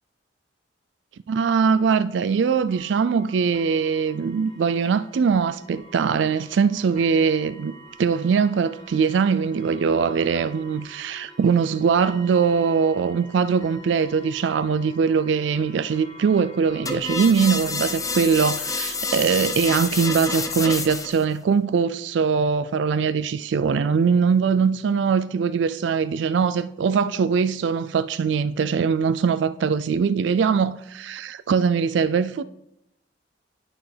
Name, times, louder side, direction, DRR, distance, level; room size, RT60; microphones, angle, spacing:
voice 1, 1.3-32.4, right 6 dB, 70° right, 0.3 m, -22 dB
sound 1, 1.7-19.0, equal, 40° right, 1.7 m, -47 dB
sound 2, 16.9-21.3, left 4 dB, 20° left, 0.6 m, -28 dB
11.0 x 5.9 x 3.4 m
head